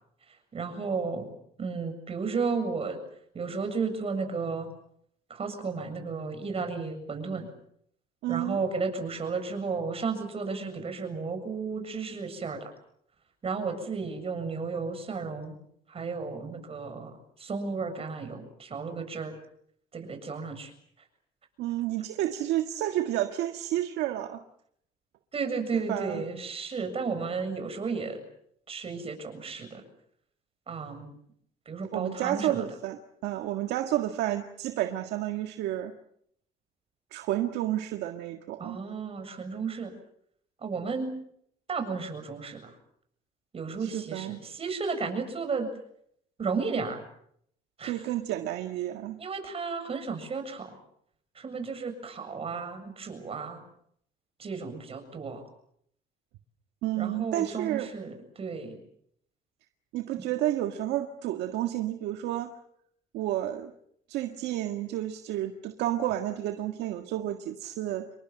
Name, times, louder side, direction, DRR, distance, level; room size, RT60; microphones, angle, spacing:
voice 1, 0.5-1.3 1.6-3.0 3.3-4.7 5.3-7.5 8.3-12.7 13.4-15.5 15.9-19.3 19.9-20.7 25.3-28.2 28.7-29.8 30.7-31.1 31.7-32.6 38.6-39.9 40.6-41.1 41.7-42.7 43.5-45.7 46.4-47.0 47.8-48.0 49.2-50.7 51.4-53.6 54.4-55.4 56.9-58.8, right 4 dB, 35° right, 7 dB, 7.2 m, -33 dB
voice 2, 8.2-8.6 21.6-24.4 25.7-26.2 31.9-35.9 37.1-38.8 43.8-44.4 47.8-49.2 56.8-57.9 59.9-62.5 63.1-63.7 64.1-68.1, right 13 dB, 85° right, 6 dB, 1.7 m, -31 dB
28.0 x 22.5 x 7.8 m, 0.70 s
cardioid pair, 110°, 17 cm